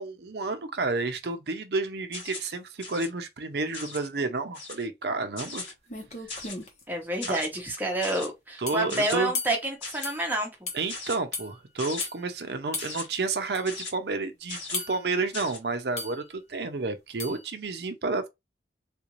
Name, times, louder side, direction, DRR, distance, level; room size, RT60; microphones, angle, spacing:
voice 1, 0.0-5.6 7.3-7.4 8.6-9.3 10.7-18.3, right 3 dB, 70° right, 0.6 m, -30 dB
sound 1, 2.1-2.5 2.8-3.1 3.7-4.1 4.5-4.9 5.4-5.7 6.3-6.7 7.2-7.5 8.0-8.3 8.9-9.2 9.8-10.1 10.9-11.2 11.8-12.1 12.8-13.1 13.7-13.9 14.5-14.8 15.3-15.6, left 3 dB, 90° left, 2.1 m, -38 dB
sound 2, 5.5-5.6 5.9-6.8 8.7-8.9 9.3-9.6 10.0-10.2 10.7-10.8 11.3-11.5 12.0-12.2 12.7-12.9 13.5-13.6 14.7-15.1 16.0-16.2 17.2-17.4, left 4 dB, 40° left, 0.9 m, -34 dB
voice 2, 6.9-10.7, right 1 dB, 10° right, 0.8 m, -29 dB
3.6 x 2.5 x 3.0 m
head